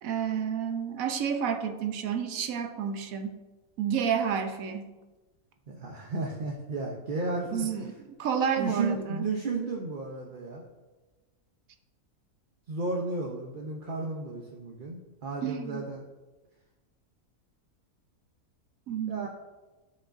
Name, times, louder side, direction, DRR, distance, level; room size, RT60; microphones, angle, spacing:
voice 1, 0.0-3.3 3.8-4.9 7.5-9.3 15.4-15.8 18.9-19.3, right 7 dB, 70° right, 6 dB, 1.0 m, -30 dB
voice 2, 5.7-7.7 8.6-10.6 12.7-16.0 19.1-19.3, right 3 dB, 45° right, -1 dB, 0.7 m, -33 dB
11.5 x 5.3 x 2.5 m, 1.2 s
omnidirectional pair, 1.6 m